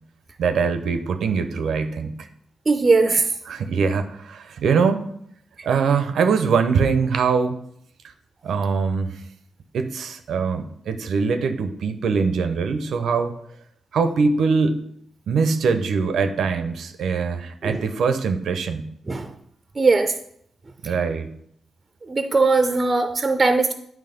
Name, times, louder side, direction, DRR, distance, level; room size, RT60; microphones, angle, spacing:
voice 1, 0.4-2.3 3.5-5.1 5.6-7.6 8.4-9.2 9.7-13.4 13.9-14.8 15.3-18.9 20.8-21.3, right 5 dB, 80° right, 8 dB, 0.6 m, -22 dB
voice 2, 2.7-3.3 17.6-17.8 19.1-19.3 19.8-20.1 20.8-20.9 22.0-23.7, right 3 dB, 35° right, 7 dB, 0.6 m, -19 dB
9.1 x 3.1 x 5.1 m, 0.69 s
cardioid pair, 70°, 0 cm